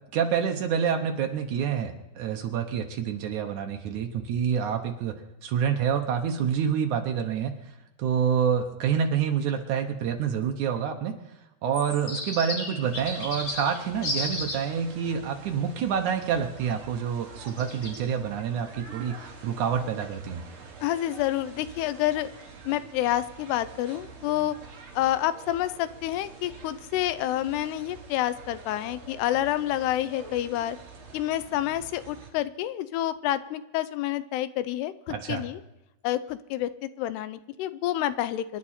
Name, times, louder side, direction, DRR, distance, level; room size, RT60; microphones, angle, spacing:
voice 1, 0.1-7.5 8.0-11.1 11.6-20.4 35.1-35.4, right 7 dB, 75° right, 4 dB, 1.8 m, -27 dB
sound 1, 11.7-14.6 17.4-18.0, left 2 dB, 35° left, 3.5 m, -33 dB
sound 2, 12.8-32.3, right 4 dB, 55° right, 4.0 m, -47 dB
voice 2, 20.8-22.3 22.6-24.6 24.9-30.8 31.1-35.6 36.0-38.6, left 13 dB, 85° left, 14 dB, 2.7 m, -28 dB
26.0 x 11.0 x 4.3 m, 0.98 s
omnidirectional pair, 4.8 m